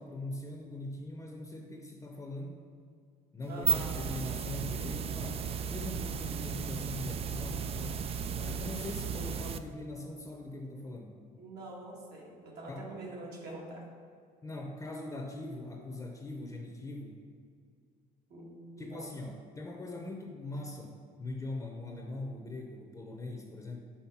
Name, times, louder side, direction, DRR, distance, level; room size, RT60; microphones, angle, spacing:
voice 1, 0.0-2.6 3.3-8.1 8.3-11.1 12.7-12.9 14.4-17.2 18.8-23.8, left 2 dB, 20° left, 2 dB, 0.7 m, -41 dB
sound 1, 3.4-9.6, right 7 dB, 35° right, 0.4 m, -35 dB
voice 2, 3.5-4.0 11.4-13.8 18.3-19.1, right 2 dB, 70° right, -2 dB, 1.8 m, -45 dB
5.7 x 5.1 x 6.0 m, 2.3 s
cardioid pair, 110°, 17 cm